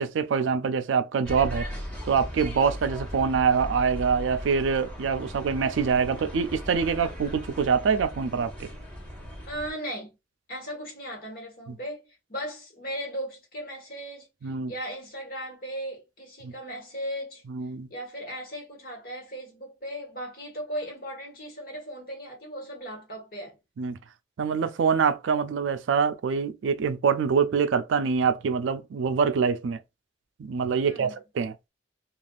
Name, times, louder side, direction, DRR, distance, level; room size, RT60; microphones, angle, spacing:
voice 1, 0.0-1.7 2.0-8.7 11.7-11.8 14.4-14.7 16.4-16.5 17.5-17.9 23.8-24.0 24.4-29.8 30.4-31.5, right 6 dB, 80° right, 0.4 m, -25 dB
sound 1, 1.2-9.7, equal, 10° left, 1.2 m, -37 dB
voice 2, 9.5-10.1 10.5-14.3 14.7-17.4 17.9-23.6 30.8-31.1, equal, 50° left, 1.4 m, -37 dB
3.4 x 2.4 x 2.3 m
head